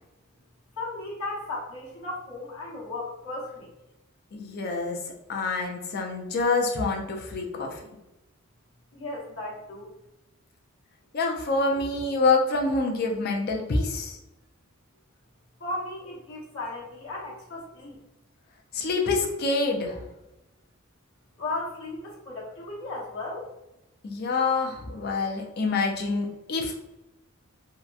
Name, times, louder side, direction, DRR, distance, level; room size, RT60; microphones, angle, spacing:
voice 1, 0.8-3.7 8.9-9.9 15.6-18.0 21.4-23.5, left 2 dB, 70° left, -5 dB, 0.9 m, -35 dB
voice 2, 4.3-5.0 5.3-7.8 11.1-14.2 18.7-20.0 24.0-26.8, left 3 dB, 45° left, 2 dB, 0.4 m, -26 dB
2.8 x 2.1 x 2.3 m, 0.94 s
head